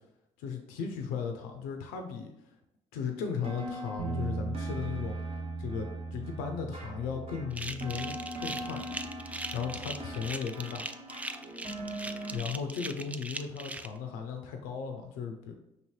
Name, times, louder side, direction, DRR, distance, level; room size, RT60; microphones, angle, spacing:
voice 1, 0.4-2.3 2.9-5.2 5.6-8.9 9.5-10.9 12.3-15.5, left 6 dB, 85° left, 5 dB, 0.4 m, -36 dB
sound 1, 3.4-12.4, equal, 45° right, 1.0 m, -42 dB
sound 2, 4.0-10.2, right 4 dB, 60° right, 0.6 m, -40 dB
sound 3, 7.5-13.9, right 2 dB, 10° right, 0.3 m, -40 dB
5.1 x 2.8 x 3.1 m, 0.86 s
hypercardioid pair, 50°, 14 cm